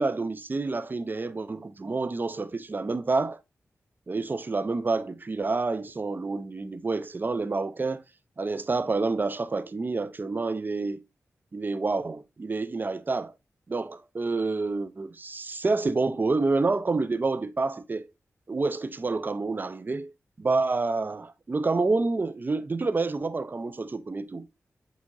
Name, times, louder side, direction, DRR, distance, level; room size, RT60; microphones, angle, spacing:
voice 1, 0.0-3.4 4.1-8.0 8.4-11.0 11.5-13.3 13.7-18.1 18.5-20.1 20.4-24.5, right 3 dB, 35° right, 0.4 m, -28 dB
6.0 x 2.8 x 2.5 m
cardioid pair, 60°, 5 cm